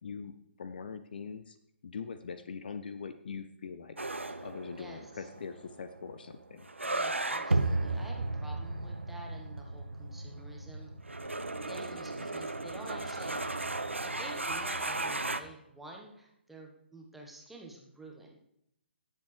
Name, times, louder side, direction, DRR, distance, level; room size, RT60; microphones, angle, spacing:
voice 1, 0.0-1.6 1.8-4.0 4.4-6.7, left 5 dB, 50° left, 10 dB, 0.6 m, -42 dB
sound 1, 4.0-15.4, right 2 dB, 80° right, 0.8 m, -35 dB
voice 2, 4.8-5.3 6.8-10.9 11.7-13.4 14.0-18.4, right 2 dB, 5° right, -1 dB, 1.4 m, -49 dB
18.0 x 7.6 x 3.4 m, 0.77 s
figure-of-eight pair, 135°, 7 cm